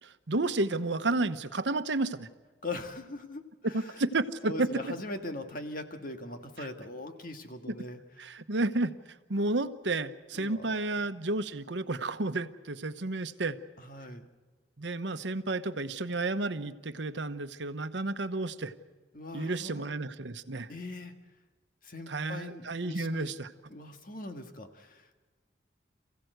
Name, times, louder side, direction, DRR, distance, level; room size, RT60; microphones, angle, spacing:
voice 1, 0.0-2.3 3.7-4.7 8.2-8.9 9.3-13.6 14.8-18.7 19.3-20.7 22.1-23.5, right 2 dB, 75° right, 10 dB, 1.0 m, -31 dB
voice 2, 2.6-4.0 4.4-8.0 10.3-10.9 13.8-14.3 19.1-19.9 20.7-21.1 21.8-23.3 23.7-25.1, left 2 dB, 45° left, 6 dB, 1.8 m, -41 dB
28.0 x 16.0 x 8.0 m, 1.4 s
head